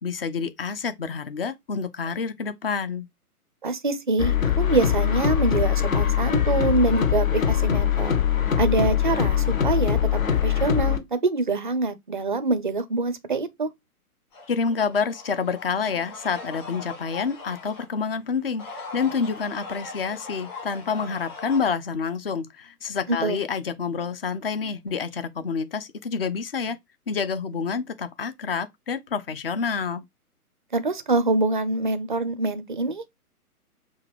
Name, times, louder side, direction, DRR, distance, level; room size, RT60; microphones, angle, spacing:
voice 1, 0.0-3.1 14.5-26.8 27.1-30.0, left 5 dB, 40° left, 0.5 m, -28 dB
voice 2, 3.6-8.1 8.6-13.7 23.1-23.4 30.7-33.1, right 3 dB, 35° right, 0.4 m, -25 dB
sound 1, 4.2-11.0, left 9 dB, 60° left, 1.0 m, -22 dB
sound 2, 14.3-17.8 18.4-21.6, left 4 dB, 20° left, 1.8 m, -40 dB
5.6 x 2.5 x 3.2 m
figure-of-eight pair, 130°, 46 cm